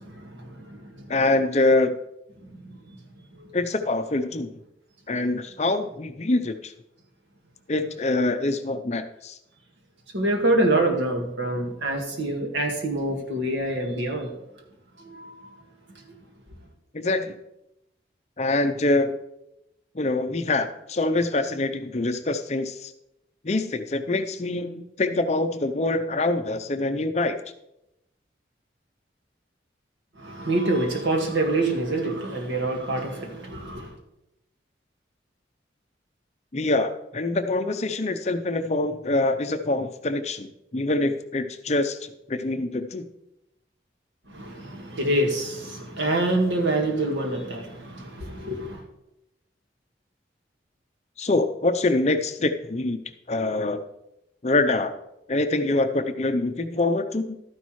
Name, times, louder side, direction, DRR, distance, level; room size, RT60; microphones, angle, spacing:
voice 1, 0.0-1.1 2.5-2.8 3.4-3.6 10.1-14.3 15.0-15.5 15.9-16.2 30.2-33.9 44.3-48.8, right 2 dB, 80° right, 1.8 m, -26 dB
voice 2, 1.1-1.9 3.5-4.5 5.1-6.7 7.7-9.4 16.9-17.3 18.4-19.2 19.9-22.9 23.4-27.4 36.5-43.1 51.2-53.0 53.3-53.8 54.4-54.9 55.3-57.4, left 2 dB, 35° left, 0.6 m, -25 dB
12.5 x 9.9 x 3.1 m
head